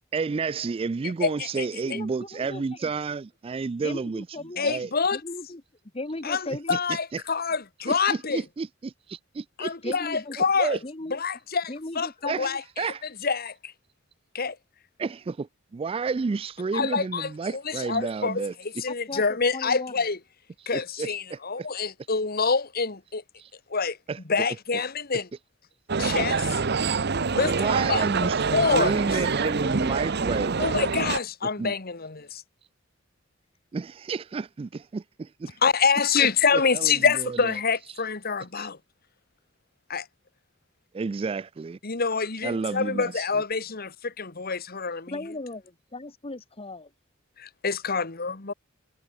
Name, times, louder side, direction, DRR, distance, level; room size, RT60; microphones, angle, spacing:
voice 1, 0.1-4.3 4.6-4.9 6.7-7.2 7.9-9.9 10.6-10.8 12.3-12.5 12.8-13.1 15.0-15.5 15.7-18.5 20.7-21.7 23.4-23.5 24.1-24.2 27.4-28.4 28.7-30.7 31.6-31.7 33.7-35.6 36.5-37.5 38.6-38.7 40.9-41.8 42.4-43.2, right 4 dB, 30° right, 0.3 m, -31 dB
voice 2, 1.2-2.0 4.6-5.2 6.2-8.4 9.6-10.8 11.1-12.1 12.4-12.9 13.2-13.7 14.3-14.6 16.7-18.4 18.8-20.2 20.7-23.2 23.7-24.0 24.3-25.3 26.0-26.6 27.3-28.0 28.5-28.9 30.6-32.4 35.6-38.8 39.9-40.0 41.8-45.2 47.4-48.5, left 5 dB, 50° left, 1.7 m, -26 dB
voice 3, 1.8-2.9 3.8-4.7 5.1-5.6 5.9-6.8 9.8-10.4 10.8-11.2 11.7-12.6 19.1-19.2 19.5-19.9 45.1-46.9, left 2 dB, 30° left, 1.4 m, -37 dB
sound 1, 25.9-31.2, right 4 dB, 55° right, 0.9 m, -26 dB
head